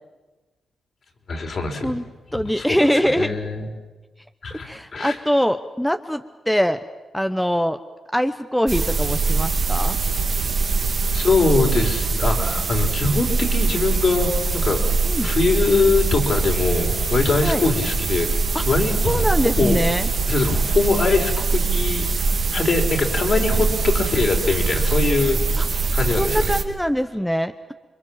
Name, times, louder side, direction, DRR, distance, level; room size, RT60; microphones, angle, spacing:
voice 1, 1.3-1.9 2.4-3.7 4.4-5.2 11.1-14.8 15.2-18.3 18.6-19.8 20.3-25.4 25.9-26.5, left 3 dB, 60° left, 2 dB, 4.5 m, -22 dB
voice 2, 2.3-3.3 4.6-6.8 7.1-7.8 8.1-10.0 15.0-15.3 17.4-17.6 18.5-18.6 19.0-20.1 25.6-25.7 26.2-27.5, equal, 5° left, 9 dB, 1.0 m, -22 dB
sound 1, 8.7-26.6, right 4 dB, 55° right, 2.4 m, -22 dB
28.0 x 22.5 x 7.4 m, 1.2 s
cardioid pair, 60°, 0 cm